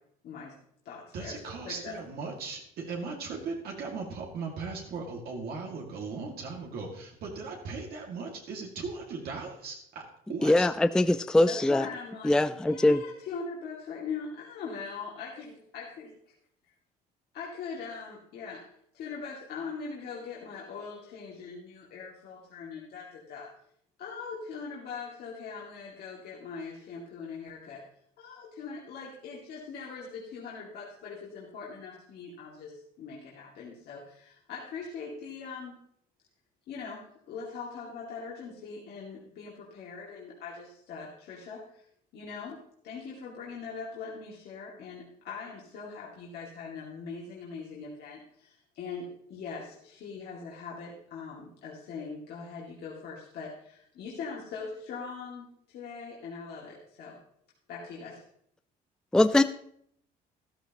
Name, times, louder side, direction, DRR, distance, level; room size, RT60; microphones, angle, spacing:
voice 1, 0.2-0.6 0.8-1.9 11.5-12.4 12.6-16.3 17.3-18.6 18.9-23.5 24.0-27.8 28.2-35.8 36.7-41.8 42.1-42.6 42.8-57.2 57.7-58.2, left 5 dB, 70° left, -4 dB, 2.4 m, -41 dB
voice 2, 1.1-10.0 10.3-10.7, right 4 dB, 65° right, 0 dB, 2.3 m, -38 dB
voice 3, 10.4-11.8 12.2-13.0 59.1-59.4, left 1 dB, 5° left, 12 dB, 0.4 m, -22 dB
13.0 x 12.5 x 3.0 m, 0.68 s
cardioid pair, 110°, 17 cm